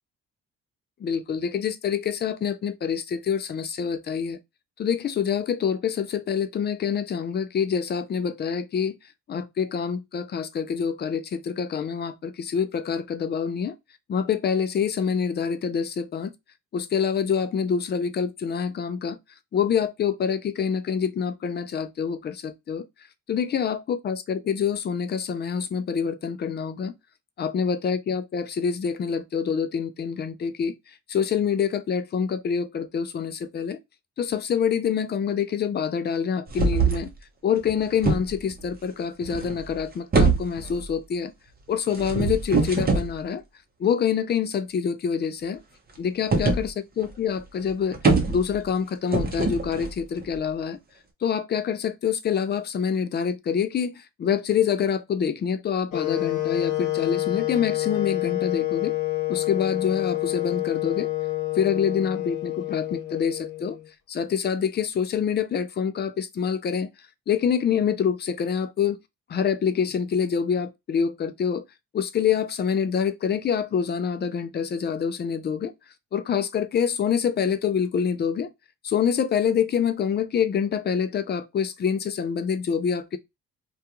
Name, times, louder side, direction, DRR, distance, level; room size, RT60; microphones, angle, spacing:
voice 1, 1.0-4.4 4.8-9.0 9.3-13.8 14.1-16.3 16.7-19.2 19.5-22.8 23.3-26.9 27.4-30.7 31.1-33.8 34.2-37.1 37.4-41.3 41.7-43.4 43.8-45.6 46.0-48.0 48.3-50.8 51.2-59.0 59.3-61.1 61.5-63.8 64.1-66.9 67.3-69.0 69.3-71.6 71.9-75.7 76.1-78.5 78.8-83.2, left 7 dB, 35° left, 0.4 m, -26 dB
sound 1, 36.5-37.1 37.6-38.6 39.2-39.8 40.1-40.9 41.9-43.1 46.3-46.7 47.0-47.1 47.4-47.5 47.7-48.7 49.1-50.4, right 4 dB, 30° right, 0.7 m, -23 dB
Wind instrument woodwind instrument, 55.9-63.9, left 18 dB, 75° left, 0.8 m, -28 dB
2.3 x 2.3 x 2.9 m
cardioid pair, 90°, 30 cm